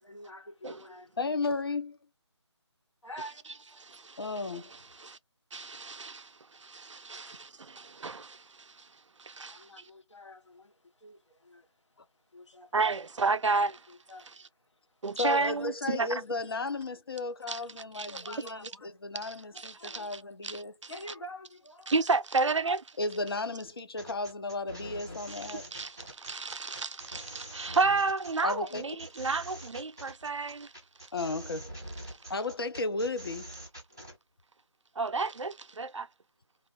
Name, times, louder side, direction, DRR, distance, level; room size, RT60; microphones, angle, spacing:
voice 1, 0.0-1.2 3.0-3.5 7.2-7.3 9.4-12.8 13.9-15.5 15.9-16.0 16.4-16.5 18.0-19.0 19.5-20.2 20.6-22.0 22.4-22.5, equal, 80° left, 0.9 m, -48 dB
voice 2, 1.2-2.0 4.2-4.7 15.2-18.5 18.8-20.8 23.0-25.7 28.4-29.0 31.1-31.7 32.3-33.5, left 3 dB, 50° left, 0.5 m, -34 dB
voice 3, 3.8-4.2 5.0-5.2 5.5-8.9 9.2-9.6 12.7-13.8 15.0-16.1 17.5-17.6 17.9-18.1 19.2-20.9 21.9-22.8 25.3-30.7 32.1-32.2 35.0-36.1, right 4 dB, 85° right, 0.4 m, -32 dB
sound 1, 24.0-34.2, right 1 dB, 10° right, 0.3 m, -45 dB
2.4 x 2.3 x 2.9 m
figure-of-eight pair, 160°, 15 cm